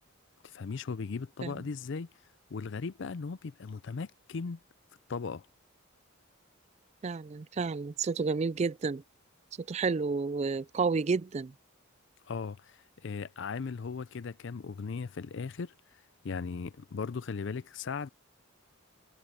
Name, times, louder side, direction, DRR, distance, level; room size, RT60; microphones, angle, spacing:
voice 1, 0.4-2.1 2.5-4.6 5.1-5.5 12.3-15.7 16.2-18.1, left 5 dB, 55° left, 0.4 m, -37 dB
voice 2, 7.0-9.0 9.6-11.5, right 4 dB, 30° right, 0.3 m, -31 dB
head